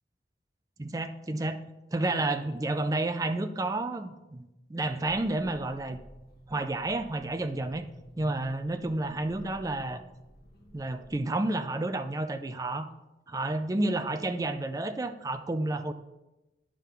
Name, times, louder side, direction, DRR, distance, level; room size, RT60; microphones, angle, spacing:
voice 1, 0.8-1.6 1.9-6.0 6.5-7.9 8.2-10.0 10.7-12.9 13.3-15.9, right 2 dB, 20° right, 8 dB, 0.4 m, -30 dB
sound 1, 5.1-11.2, equal, 55° left, 1.1 m, -52 dB
9.2 x 3.7 x 6.8 m, 0.99 s
head